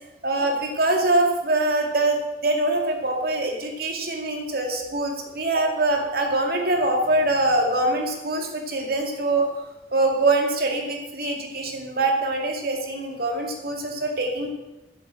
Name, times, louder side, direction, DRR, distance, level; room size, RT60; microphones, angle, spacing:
voice 1, 0.2-9.5 9.9-14.5, right 2 dB, 55° right, 2 dB, 2.3 m, -24 dB
10.5 x 7.7 x 7.7 m, 1.0 s
head